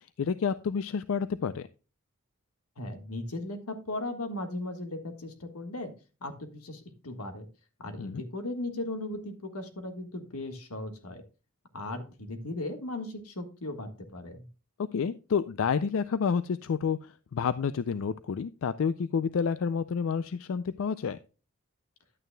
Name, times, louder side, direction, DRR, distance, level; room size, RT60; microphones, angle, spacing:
voice 1, 0.0-1.7 8.0-8.2 14.9-21.2, left 6 dB, 65° left, 14 dB, 0.4 m, -29 dB
voice 2, 2.8-5.9 6.2-7.4 7.8-11.2 11.7-14.4, left 2 dB, 90° left, 7 dB, 1.6 m, -37 dB
11.0 x 9.0 x 2.2 m, 0.33 s
head